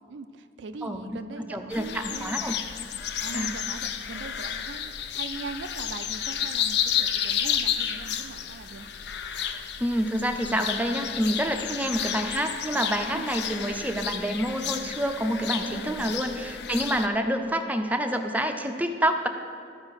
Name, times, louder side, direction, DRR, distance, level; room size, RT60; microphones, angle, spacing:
voice 1, 0.1-2.4 3.2-8.9 13.1-13.3 15.6-16.3, right 4 dB, 80° right, 10 dB, 0.4 m, -41 dB
voice 2, 1.5-2.6 3.3-3.5 9.8-19.3, equal, 10° right, 5 dB, 0.5 m, -27 dB
sound 1, 1.7-17.1, left 9 dB, 65° left, 0.5 m, -31 dB
12.5 x 4.9 x 5.6 m, 2.3 s
head